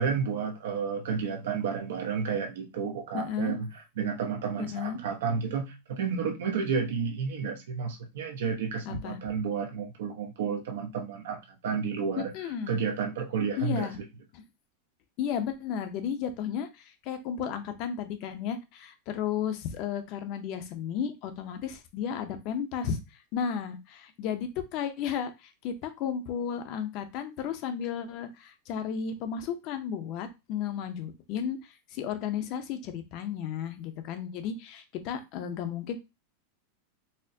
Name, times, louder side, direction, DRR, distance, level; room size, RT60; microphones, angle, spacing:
voice 1, 0.0-12.3 12.7-14.1, right 6 dB, 80° right, 0.8 m, -31 dB
voice 2, 3.1-3.6 4.6-5.0 8.9-9.2 12.2-12.8 13.6-14.0 14.3-14.4 15.2-23.0 23.3-36.0, left 8 dB, 40° left, 0.5 m, -33 dB
4.2 x 2.1 x 2.6 m
supercardioid pair, 160°, 0 cm